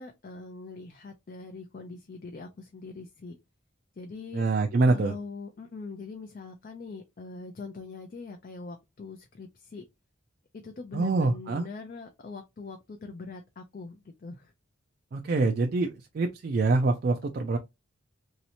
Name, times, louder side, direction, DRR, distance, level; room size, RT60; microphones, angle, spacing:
voice 1, 0.0-3.4 4.0-4.5 4.9-9.9 10.6-14.5 15.3-15.5, left 4 dB, 40° left, 0.4 m, -42 dB
voice 2, 4.3-5.1 10.9-11.6 15.1-17.6, right 3 dB, 45° right, 0.3 m, -25 dB
3.1 x 2.7 x 2.8 m
head